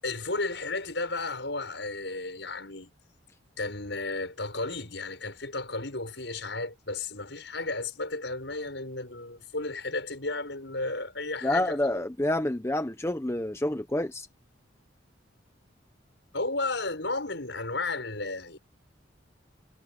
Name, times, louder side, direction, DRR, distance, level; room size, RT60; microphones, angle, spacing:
voice 1, 0.0-2.9 3.6-12.1 16.3-18.6, left 3 dB, 65° left, 6.5 m, -33 dB
voice 2, 11.4-14.3, left 1 dB, 15° left, 0.8 m, -28 dB
head